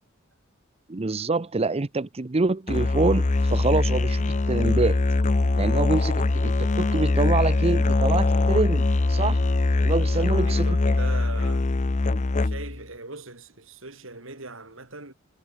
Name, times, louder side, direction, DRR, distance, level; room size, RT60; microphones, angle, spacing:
voice 1, 0.9-5.0 5.6-9.5 9.8-10.7, right 3 dB, 30° right, 0.7 m, -26 dB
Musical instrument, 2.7-12.8, left 2 dB, 40° left, 0.7 m, -22 dB
voice 2, 9.8-11.7 12.2-15.1, right 3 dB, 75° right, 6.1 m, -40 dB
head